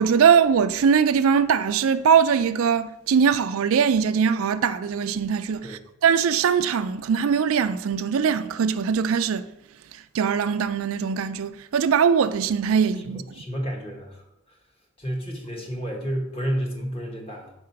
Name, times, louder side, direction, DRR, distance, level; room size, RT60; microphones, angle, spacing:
voice 1, 0.0-9.4 10.1-13.2, right 7 dB, 80° right, 0.4 m, -21 dB
voice 2, 13.0-14.6 15.0-17.5, equal, 25° left, 1.2 m, -31 dB
4.8 x 4.3 x 5.7 m
head